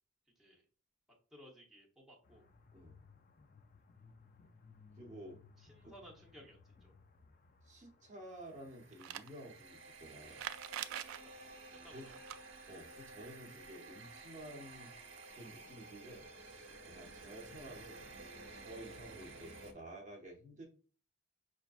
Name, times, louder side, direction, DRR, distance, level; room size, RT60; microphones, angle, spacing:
voice 1, 1.3-2.4 5.6-6.9 11.4-12.2, equal, ahead, -3 dB, 0.8 m, -58 dB
sound 1, 2.2-16.1, left 4 dB, 40° left, 0.4 m, -65 dB
voice 2, 5.0-5.4 5.8-5.9 7.6-10.4 11.9-12.1 12.7-14.9 15.3-18.1 18.5-20.6, right 1 dB, 35° right, -1 dB, 0.7 m, -52 dB
sound 2, 8.5-19.7, right 3 dB, 65° right, 0.8 m, -53 dB
sound 3, 8.9-9.3 10.3-11.2 12.1-12.4 14.9-15.0 15.2-15.3 16.4-16.5, right 11 dB, 80° right, 0.3 m, -43 dB
5.7 x 2.4 x 2.4 m, 0.40 s
head